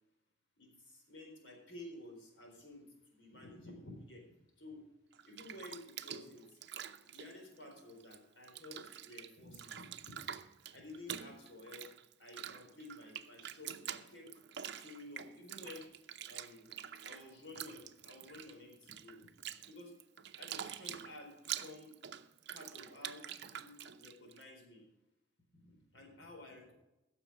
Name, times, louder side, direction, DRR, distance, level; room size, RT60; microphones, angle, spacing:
voice 1, 0.6-4.3 4.6-4.9 5.2-6.6 7.0-10.3 10.7-11.9 12.2-14.3 14.7-15.9 16.3-16.7 17.0-19.3 19.7-19.9 20.4-21.9 22.5-24.9 25.5-26.7, left 1 dB, 90° left, 2 dB, 4.2 m, -52 dB
Bathtub (filling or washing), 5.1-8.2 8.4-24.4, right 9 dB, 65° right, 0.7 m, -47 dB
15.5 x 7.0 x 4.9 m, 0.94 s
head